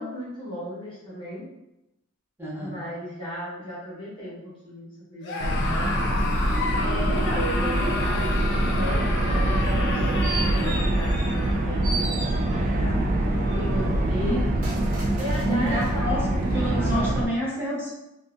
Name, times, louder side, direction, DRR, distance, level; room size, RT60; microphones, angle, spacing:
voice 1, 0.0-1.4 2.6-5.9 6.8-13.0 13.5-14.7 15.1-16.1 16.8-17.1, left 1 dB, 25° left, -7 dB, 0.9 m, -35 dB
voice 2, 2.4-2.8 14.2-14.5 15.4-16.2 16.5-17.9, equal, 10° right, -8 dB, 0.8 m, -28 dB
Screaming, 5.2-11.7, left 3 dB, 55° left, 0.4 m, -32 dB
sound 1, 5.4-17.3, right 1 dB, 40° right, 0.3 m, -24 dB
sound 2, 9.7-11.5 11.8-12.8 13.4-16.0 16.5-16.6, right 3 dB, 65° right, 1.0 m, -37 dB
2.6 x 2.5 x 2.4 m, 0.90 s
head